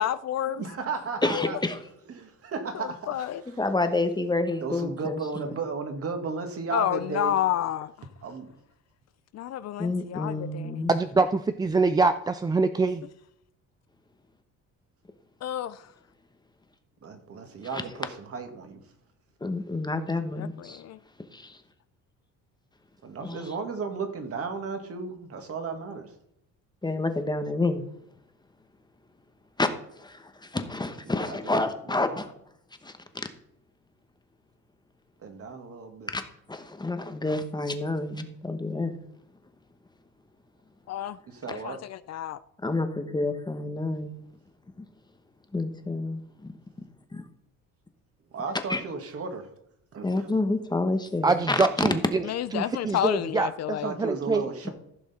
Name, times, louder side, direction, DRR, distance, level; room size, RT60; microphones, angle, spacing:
voice 1, 0.0-0.6 1.3-1.5 2.7-3.4 6.7-8.1 9.3-10.9 15.4-15.9 20.4-21.0 40.9-41.2 41.5-42.4 52.2-53.9, left 11 dB, 50° left, 0.5 m, -30 dB
voice 2, 0.6-1.6 2.1-3.3 4.6-7.3 8.2-8.5 17.0-18.8 23.0-26.1 31.1-31.5 31.9-32.2 35.2-36.1 41.3-41.8 48.3-49.5 49.9-50.3 53.8-54.7, right 4 dB, 40° right, 1.9 m, -34 dB
voice 3, 1.2-1.8 3.6-5.5 9.8-11.0 17.7-17.8 19.4-20.8 21.3-21.6 23.2-23.5 26.8-27.9 29.6-29.7 30.0-32.3 32.8-32.9 36.1-36.2 36.5-39.0 42.6-44.1 44.8-44.9 45.5-46.5 48.7-48.8 50.0-51.9, left 2 dB, 10° left, 1.0 m, -29 dB
voice 4, 10.9-13.1 51.2-52.3 52.5-54.5, right 3 dB, 15° right, 0.3 m, -25 dB
15.0 x 6.1 x 4.3 m
cardioid pair, 125°, 34 cm